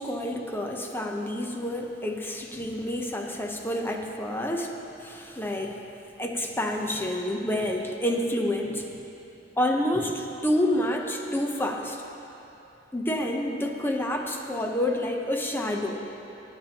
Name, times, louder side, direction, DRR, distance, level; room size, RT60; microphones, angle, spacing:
voice 1, 0.0-4.7 5.0-5.8 6.2-8.9 9.6-12.0 12.9-16.0, left 1 dB, 10° left, 2 dB, 0.7 m, -28 dB
17.5 x 8.8 x 2.9 m, 2.9 s
head